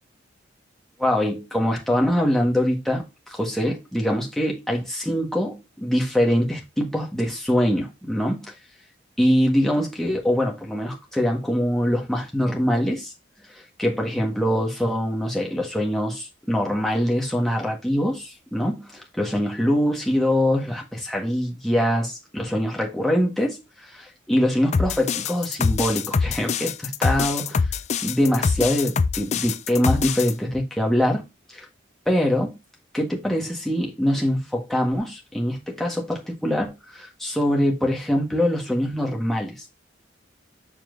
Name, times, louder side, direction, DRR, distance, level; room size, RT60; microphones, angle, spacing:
voice 1, 1.0-8.5 9.2-13.1 13.8-27.7 28.0-31.6 32.0-32.6 32.9-39.8, equal, ahead, 1.5 m, -23 dB
sound 1, 24.7-30.3, left 5 dB, 35° left, 0.3 m, -24 dB
7.1 x 5.8 x 2.6 m
head